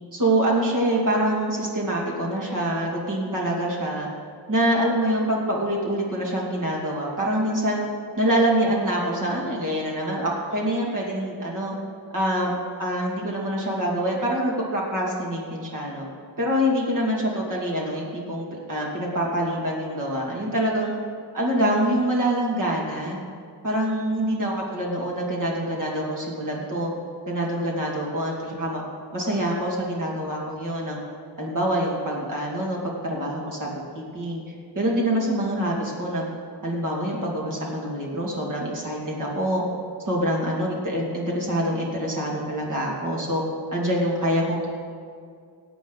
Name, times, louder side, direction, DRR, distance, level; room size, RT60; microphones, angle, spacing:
voice 1, 0.1-4.1 4.5-7.8 8.2-11.7 12.1-12.5 12.8-16.1 16.4-20.9 21.3-23.2 23.6-26.9 27.3-28.8 29.1-31.0 31.4-34.4 34.7-36.3 36.6-39.6 40.1-43.4 43.7-44.7, right 1 dB, 45° right, -3 dB, 2.6 m, -25 dB
21.0 x 9.0 x 4.0 m, 2.3 s
wide cardioid pair, 160°, 42 cm